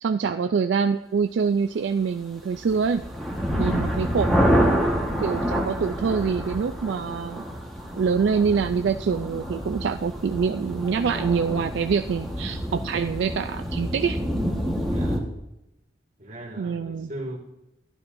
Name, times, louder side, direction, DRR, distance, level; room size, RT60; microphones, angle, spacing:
voice 1, 0.0-3.0 3.6-4.4 5.2-7.5 8.0-14.2 16.6-17.1, right 6 dB, 70° right, 8 dB, 0.3 m, -25 dB
sound 1, 2.4-15.2, equal, ahead, 1.3 m, -27 dB
voice 2, 14.9-15.3 16.2-17.4, right 1 dB, 40° right, -2 dB, 2.1 m, -38 dB
12.0 x 11.5 x 2.6 m, 0.90 s
head